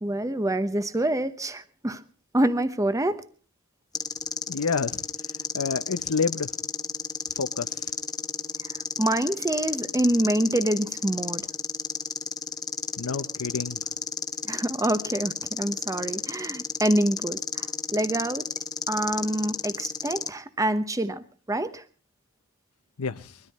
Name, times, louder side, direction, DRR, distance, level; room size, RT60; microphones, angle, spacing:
voice 1, 0.0-2.0 2.3-3.2 8.6-8.7 9.0-11.5 14.4-18.5 18.9-21.8, right 1 dB, 15° right, 0.9 m, -26 dB
sound 1, 3.9-20.3, left 5 dB, 20° left, 1.1 m, -33 dB
voice 2, 4.5-5.0 5.5-6.5 7.4-7.9 13.0-13.8 23.0-23.4, left 5 dB, 90° left, 0.7 m, -29 dB
22.5 x 13.5 x 4.1 m
head